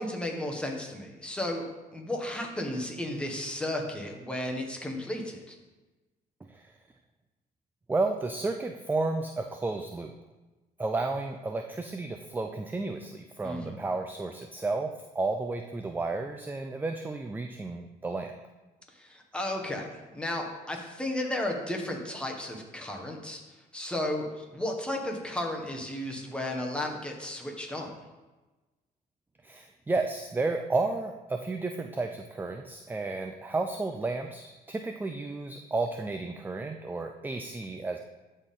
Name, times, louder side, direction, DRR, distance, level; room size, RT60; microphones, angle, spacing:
voice 1, 0.0-1.7 1.9-5.6 13.4-13.9 18.9-27.9, left 1 dB, 5° left, 0 dB, 1.3 m, -34 dB
voice 2, 7.9-10.1 10.8-14.9 15.1-18.3 29.4-38.0, right 3 dB, 10° right, 5 dB, 0.4 m, -32 dB
13.0 x 4.3 x 3.7 m, 1.2 s
cardioid pair, 110°, 17 cm